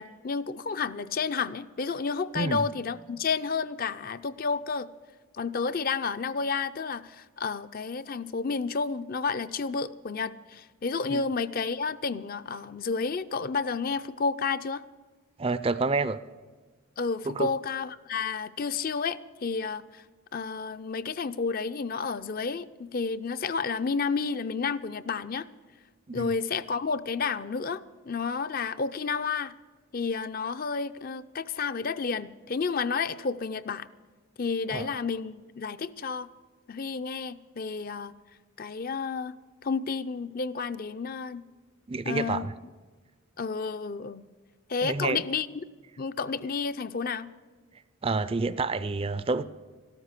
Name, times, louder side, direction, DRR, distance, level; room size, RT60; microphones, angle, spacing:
voice 1, 0.0-4.9 5.3-14.8 17.0-20.0 20.3-25.5 26.1-29.5 29.9-33.9 34.4-36.3 36.7-38.1 38.6-39.4 39.6-41.4 42.0-42.4 43.4-44.2 44.7-45.6 46.0-47.3, left 5 dB, 40° left, 0.5 m, -31 dB
voice 2, 15.4-16.2 17.3-17.5 26.1-26.3 34.7-34.9 41.9-42.5 44.8-45.2 48.0-49.4, right 3 dB, 25° right, 0.4 m, -28 dB
13.5 x 12.5 x 8.2 m
head